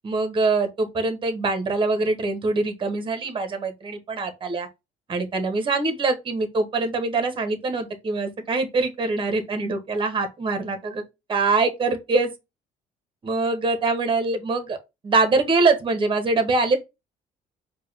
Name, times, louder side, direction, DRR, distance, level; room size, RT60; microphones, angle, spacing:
voice 1, 0.0-4.7 5.1-11.0 11.3-12.3 13.2-14.8 15.0-16.8, right 3 dB, 30° right, 1.0 m, -23 dB
4.5 x 2.3 x 3.3 m
cardioid pair, 110°, 17 cm